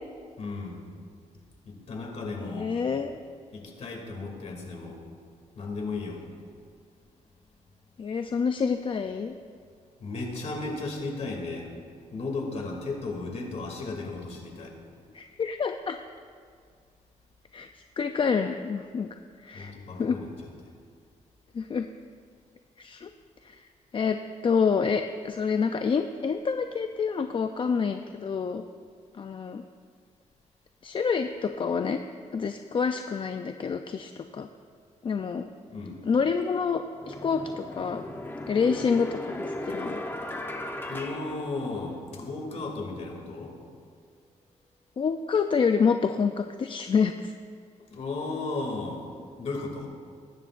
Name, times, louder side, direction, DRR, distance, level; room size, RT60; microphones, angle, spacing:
voice 1, 0.4-0.8 1.6-2.7 3.5-5.0 5.5-6.2 10.0-11.7 12.1-14.8 19.5-20.7 35.7-36.0 40.9-43.5 47.9-49.0 49.4-49.9, left 3 dB, 55° left, 0 dB, 2.6 m, -35 dB
voice 2, 2.4-3.2 8.0-9.4 15.1-16.0 17.5-17.7 18.0-19.1 19.4-19.7 20.0-20.2 21.5-21.9 22.8-23.1 23.4-23.7 23.9-24.2 24.4-28.6 29.1-29.6 30.8-32.0 32.3-34.5 35.0-35.5 36.1-38.0 38.5-40.0 45.0-47.3, left 5 dB, 40° left, 7 dB, 0.5 m, -27 dB
sound 1, 36.3-36.4 37.0-42.2, left 1 dB, 15° left, 1.0 m, -37 dB
21.0 x 11.0 x 2.5 m, 2.1 s
cardioid pair, 100°, 13 cm